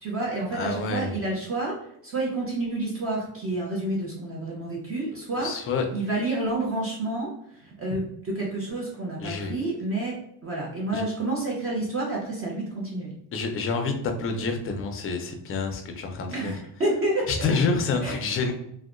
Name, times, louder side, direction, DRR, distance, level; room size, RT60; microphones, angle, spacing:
voice 1, 0.0-1.8 2.0-5.5 5.9-7.3 7.6-10.2 10.4-13.1 16.3-17.5 18.0-18.1, right 2 dB, 30° right, -4 dB, 0.6 m, -29 dB
voice 2, 0.5-1.1 5.4-5.9 9.2-9.5 10.9-11.0 13.3-16.5 17.3-18.5, left 4 dB, 35° left, 4 dB, 0.4 m, -28 dB
2.7 x 2.1 x 2.4 m, 0.75 s
cardioid pair, 130°, 44 cm